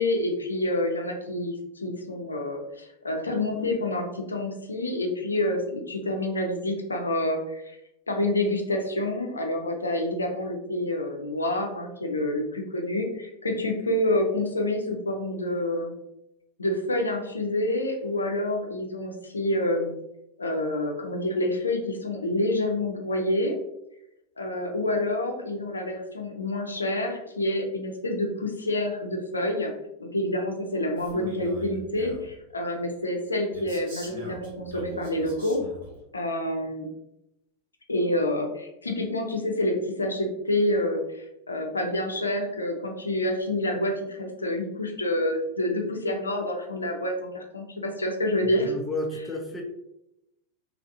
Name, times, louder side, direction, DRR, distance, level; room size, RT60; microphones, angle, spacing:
voice 1, 0.0-7.8 8.1-15.9 16.6-19.9 20.4-23.6 24.4-29.7 30.0-35.6 36.1-36.9 37.9-48.7, left 1 dB, 75° left, 3 dB, 0.5 m, -28 dB
Male speech man speaking, 31.0-32.3 33.5-36.0, equal, 55° right, 1.3 m, -42 dB
voice 2, 48.5-49.6, left 2 dB, 10° left, 2 dB, 0.6 m, -32 dB
3.4 x 2.5 x 2.6 m, 0.86 s
figure-of-eight pair, 90°, 0 cm